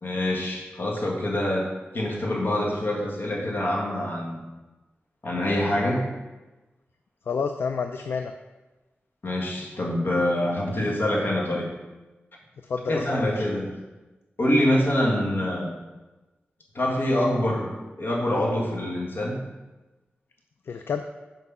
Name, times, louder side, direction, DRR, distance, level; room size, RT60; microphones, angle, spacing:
voice 1, 0.0-1.7 1.9-4.4 5.2-6.1 9.2-11.7 12.9-13.7 14.4-15.7 16.7-17.7 18.0-19.4, left 1 dB, 60° left, -2 dB, 1.7 m, -25 dB
voice 2, 7.3-8.3 12.6-13.4 20.7-21.0, left 5 dB, 75° left, 7 dB, 0.4 m, -29 dB
6.0 x 5.2 x 5.5 m, 1.1 s
wide cardioid pair, 105°, 4 cm